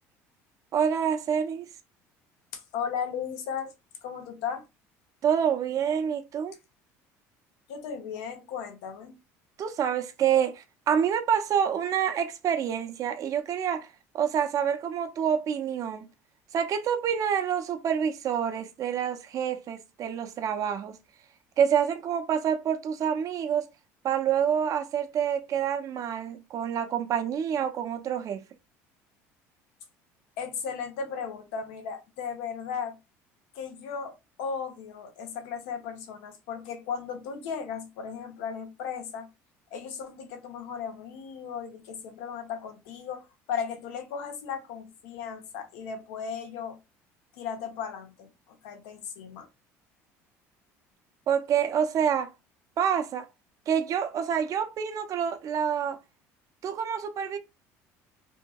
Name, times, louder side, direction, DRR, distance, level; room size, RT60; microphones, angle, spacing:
voice 1, 0.7-1.6 5.2-6.5 9.6-13.9 14.1-16.1 16.5-20.9 21.6-23.6 24.0-28.4 51.3-52.3 52.8-53.3 53.7-56.0 56.6-57.4, right 8 dB, 50° right, 0.6 m, -27 dB
voice 2, 2.5-3.7 4.0-4.6 7.7-9.2 30.4-33.0 33.5-39.3 39.7-46.8 47.3-49.5, left 6 dB, 80° left, 0.7 m, -36 dB
2.8 x 2.6 x 2.2 m
supercardioid pair, 80°, 7 cm